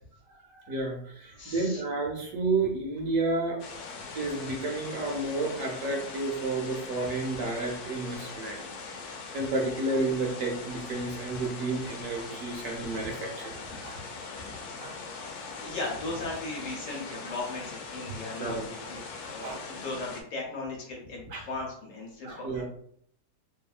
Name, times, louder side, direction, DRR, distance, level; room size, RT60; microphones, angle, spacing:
voice 1, 0.5-3.6 4.1-8.7 9.1-14.3 14.8-15.0 18.4-18.7 19.4-19.6 21.3-21.5 22.2-22.6, right 3 dB, 70° right, 1 dB, 0.9 m, -31 dB
voice 2, 1.4-1.8 13.7-13.9 14.4-14.7 15.0-15.3 15.6-22.6, left 2 dB, 60° left, -2 dB, 1.1 m, -38 dB
sound 1, 3.6-20.2, left 4 dB, 90° left, 1.1 m, -41 dB
2.8 x 2.6 x 2.4 m, 0.64 s
omnidirectional pair, 1.6 m